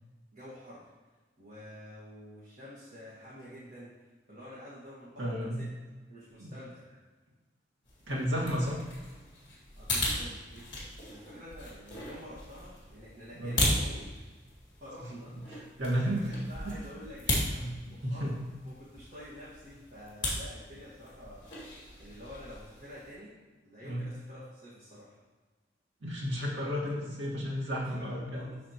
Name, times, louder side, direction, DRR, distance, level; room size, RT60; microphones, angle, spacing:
voice 1, 0.3-0.9 1.4-5.7 6.1-6.9 8.6-8.7 9.8-14.2 14.8-15.3 16.2-18.4 18.6-21.6 22.0-23.4 23.6-25.2 27.8-28.6, equal, 40° right, -9 dB, 1.7 m, -48 dB
voice 2, 5.2-5.6 6.4-6.5 8.1-8.8 13.3-13.6 15.8-16.2 16.6-16.8 17.6-17.7 18.0-18.4 23.8-24.1 26.0-28.5, equal, 85° right, -3 dB, 1.8 m, -32 dB
sound 1, 7.8-23.2, left 1 dB, 25° left, 2.0 m, -37 dB
12.0 x 4.1 x 3.0 m, 1.3 s
head